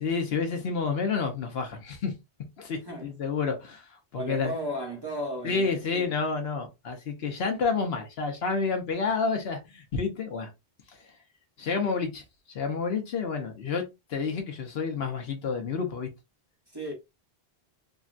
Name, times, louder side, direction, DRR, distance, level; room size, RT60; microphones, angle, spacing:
voice 1, 0.0-2.1 2.6-4.5 5.4-10.5 11.6-13.8 14.1-16.1, left 5 dB, 70° left, 1.0 m, -29 dB
voice 2, 4.1-6.1 16.7-16.9, right 1 dB, 25° right, 1.0 m, -35 dB
3.7 x 2.2 x 2.4 m
omnidirectional pair, 1.1 m